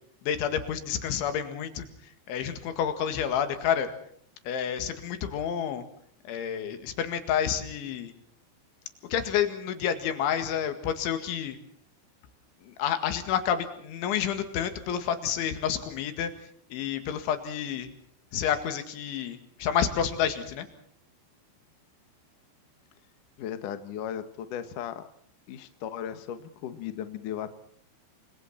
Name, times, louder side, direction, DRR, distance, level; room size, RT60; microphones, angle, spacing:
voice 1, 0.2-1.9 2.3-3.9 4.5-5.8 6.3-8.1 9.1-11.6 12.6-16.3 16.7-17.9 18.3-20.7, left 8 dB, 80° left, 9 dB, 4.4 m, -29 dB
voice 2, 23.4-25.1 25.5-27.5, left 9 dB, 60° left, 10 dB, 2.3 m, -36 dB
29.0 x 24.5 x 4.3 m, 0.62 s
omnidirectional pair, 5.4 m